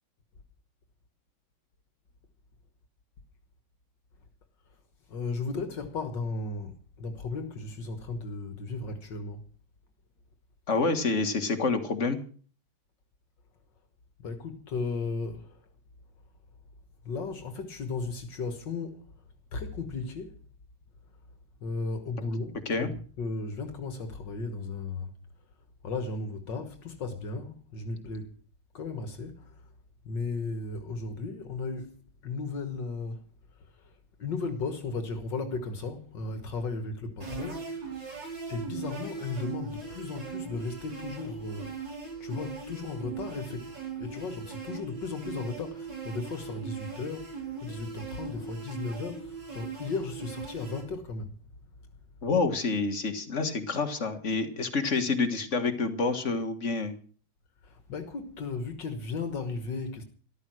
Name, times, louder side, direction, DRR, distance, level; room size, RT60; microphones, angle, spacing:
voice 1, 5.1-9.4 14.2-15.7 17.0-19.1 19.5-20.4 21.6-25.2 25.8-28.4 28.7-29.7 30.0-33.3 33.6-38.2 38.5-42.0 42.2-51.4 57.6-60.0, left 3 dB, 65° left, 2.0 m, -35 dB
voice 2, 10.7-12.2 22.7-22.9 52.2-56.9, left 4 dB, 40° left, 1.9 m, -28 dB
sound 1, 37.2-50.8, right 5 dB, 65° right, 5.9 m, -40 dB
14.0 x 13.0 x 6.2 m
omnidirectional pair, 2.1 m